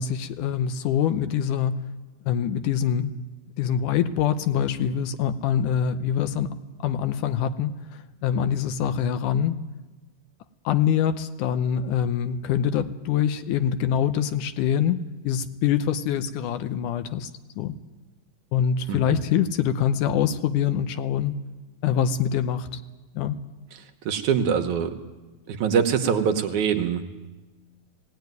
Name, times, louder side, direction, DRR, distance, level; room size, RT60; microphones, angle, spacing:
voice 1, 0.0-1.9 2.3-3.1 3.6-6.6 6.8-9.6 10.7-17.3 17.6-17.8 18.5-21.3 21.8-22.8 23.2-23.4, left 8 dB, 75° left, 10 dB, 2.2 m, -24 dB
voice 2, 18.9-19.2 24.1-24.9 25.5-27.0, right 7 dB, 70° right, 6 dB, 2.4 m, -23 dB
18.0 x 18.0 x 9.5 m, 1.2 s
omnidirectional pair, 3.9 m